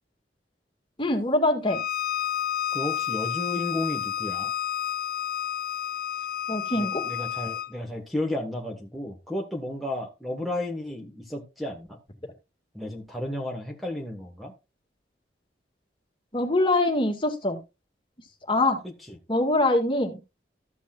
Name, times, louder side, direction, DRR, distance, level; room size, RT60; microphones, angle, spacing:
voice 1, 1.0-1.8 6.5-7.0 16.3-17.6 18.5-18.8 19.3-20.2, left 2 dB, 30° left, 1.8 m, -23 dB
Bowed string instrument, 1.7-7.7, left 10 dB, 55° left, 0.6 m, -30 dB
voice 2, 2.7-4.5 6.7-12.0 12.7-14.5 19.1-19.2, left 1 dB, ahead, 1.4 m, -33 dB
13.5 x 8.3 x 2.4 m
head